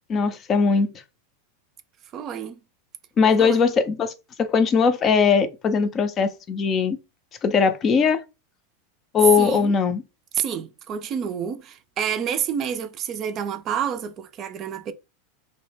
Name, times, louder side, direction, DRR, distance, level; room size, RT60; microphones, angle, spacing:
voice 1, 0.1-0.9 3.2-4.1 4.4-7.0 7.4-8.2 9.1-10.0, left 5 dB, 30° left, 0.4 m, -20 dB
voice 2, 2.1-2.6 3.4-3.6 9.4-9.7 10.3-14.9, right 8 dB, 40° right, 0.3 m, -29 dB
2.1 x 2.0 x 3.2 m
figure-of-eight pair, 90°, 0 cm